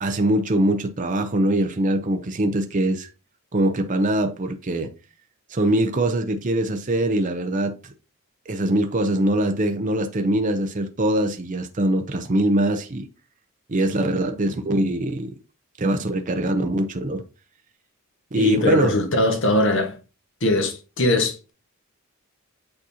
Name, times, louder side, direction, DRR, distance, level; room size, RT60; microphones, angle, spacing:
voice 1, 0.0-3.1 3.5-4.9 5.5-7.9 8.5-13.1 13.7-15.3 15.8-17.2 18.3-18.9, right 1 dB, 35° right, 0.7 m, -22 dB
voice 2, 18.3-20.0 20.4-21.5, left 1 dB, 60° left, 1.4 m, -21 dB
8.8 x 4.1 x 2.8 m
head